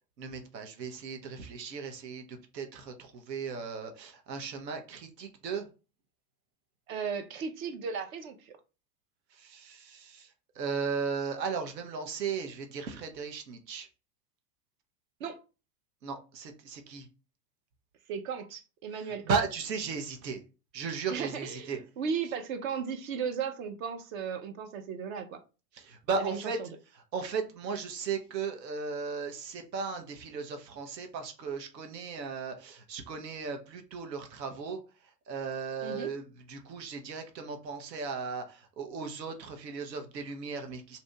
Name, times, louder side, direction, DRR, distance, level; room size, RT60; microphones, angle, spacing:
voice 1, 0.2-5.7 9.3-13.9 16.0-17.1 18.9-20.4 20.7-21.8 25.7-26.6 26.9-41.0, right 5 dB, 85° right, 0.8 m, -36 dB
voice 2, 6.9-8.5 15.2-15.4 18.1-19.2 21.1-25.4 26.2-26.7 35.8-36.1, right 6 dB, 55° right, 0.7 m, -36 dB
2.8 x 2.6 x 3.2 m
hypercardioid pair, 105°, 49 cm